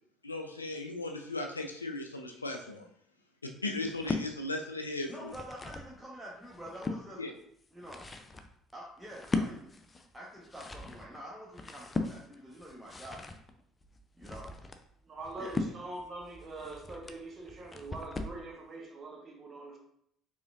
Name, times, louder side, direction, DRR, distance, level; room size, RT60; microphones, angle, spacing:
voice 1, 0.2-2.9 3.6-5.3 7.2-7.3, left 2 dB, 85° left, 0.4 m, -37 dB
sound 1, 3.8-4.3 5.0-5.9 6.4-7.0 7.6-18.4, left 3 dB, 25° left, 0.5 m, -39 dB
voice 2, 5.1-7.2 7.7-8.1 8.7-9.7 10.1-13.3 14.2-14.5 15.4-15.5, equal, 5° right, 1.1 m, -46 dB
voice 3, 15.0-19.8, right 2 dB, 35° right, 1.1 m, -43 dB
4.8 x 3.6 x 2.5 m
figure-of-eight pair, 55°, 0 cm